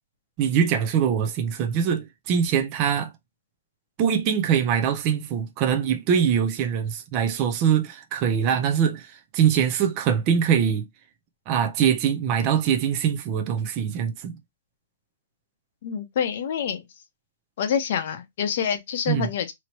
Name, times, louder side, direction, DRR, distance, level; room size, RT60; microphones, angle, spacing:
voice 1, 0.4-3.1 4.0-10.9 11.5-14.4 19.1-19.3, right 8 dB, 25° right, 0.5 m, -23 dB
voice 2, 15.8-16.8 17.6-19.5, left 8 dB, 40° left, 0.7 m, -27 dB
3.0 x 2.8 x 2.9 m
hypercardioid pair, 175°, 0 cm